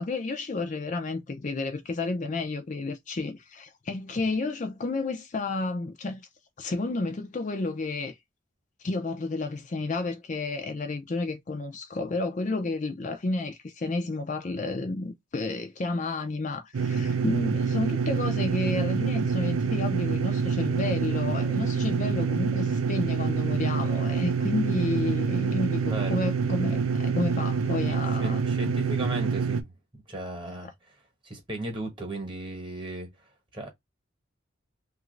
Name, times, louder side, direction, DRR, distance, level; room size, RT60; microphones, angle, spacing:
voice 1, 0.0-6.3 6.6-8.2 8.8-28.4 30.6-30.7, left 3 dB, 35° left, 0.4 m, -31 dB
sound 1, 16.7-29.6, right 5 dB, 85° right, 0.5 m, -26 dB
voice 2, 25.8-26.2 27.8-29.7 30.1-30.7 31.2-33.1 33.5-33.7, right 1 dB, 25° right, 1.1 m, -36 dB
3.0 x 2.5 x 3.0 m
head